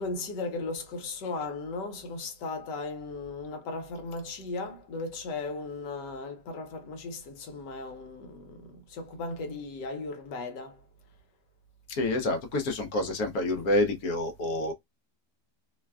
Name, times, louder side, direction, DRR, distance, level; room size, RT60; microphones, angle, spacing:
voice 1, 0.0-10.8, left 3 dB, 85° left, 1.4 m, -36 dB
voice 2, 11.9-14.7, left 1 dB, 65° left, 1.1 m, -28 dB
3.2 x 2.2 x 2.2 m
omnidirectional pair, 1.8 m